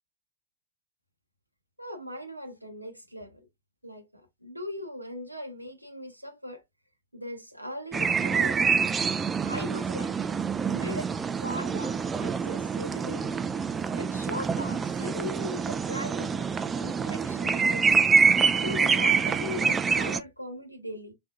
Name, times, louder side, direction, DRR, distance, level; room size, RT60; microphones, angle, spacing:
voice 1, 1.8-3.5 3.8-6.6 7.1-8.6 9.5-10.1 10.7-11.1 11.4-13.4 14.0-18.0 18.6-21.1, left 1 dB, 90° right, 0.7 m, -39 dB
sound 1, 7.9-20.2, right 5 dB, 20° right, 0.3 m, -26 dB
3.5 x 3.4 x 2.3 m
figure-of-eight pair, 90°, 0 cm